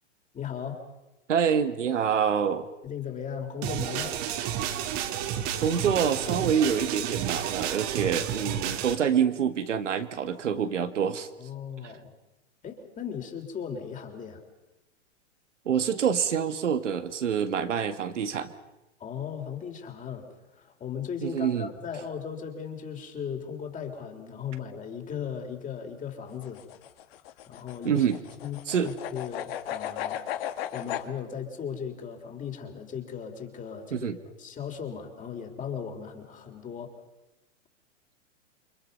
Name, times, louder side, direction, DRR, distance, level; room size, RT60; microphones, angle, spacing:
voice 1, 0.3-0.8 2.8-4.2 11.4-12.1 12.6-14.4 19.0-26.6 27.5-28.1 28.4-30.2 30.7-36.9, left 7 dB, 20° left, 4 dB, 3.7 m, -37 dB
voice 2, 1.3-2.7 5.6-11.3 11.8-11.9 15.7-18.5 21.2-21.7 27.8-28.2 28.7-28.9 33.9-34.2, right 7 dB, 80° right, 8 dB, 2.0 m, -26 dB
sound 1, 3.6-8.9, right 10 dB, 45° right, 2.6 m, -31 dB
sound 2, 26.3-31.1, left 11 dB, 55° left, 2.0 m, -35 dB
29.0 x 24.5 x 5.5 m, 1.0 s
hypercardioid pair, 120°, 36 cm